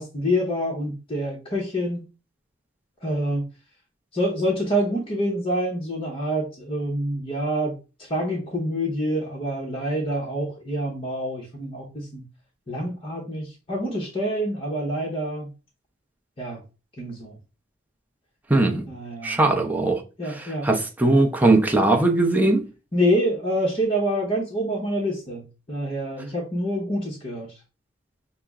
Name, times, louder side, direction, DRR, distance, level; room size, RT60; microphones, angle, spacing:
voice 1, 0.0-2.0 3.0-3.5 4.1-12.2 12.7-15.5 16.4-16.6 17.0-17.4 18.9-19.4 20.2-20.7 22.9-27.5, equal, 30° left, 0.8 m, -27 dB
voice 2, 18.5-18.9 19.2-20.0 20.6-22.6, right 2 dB, 10° right, 0.5 m, -19 dB
5.7 x 2.0 x 3.5 m
head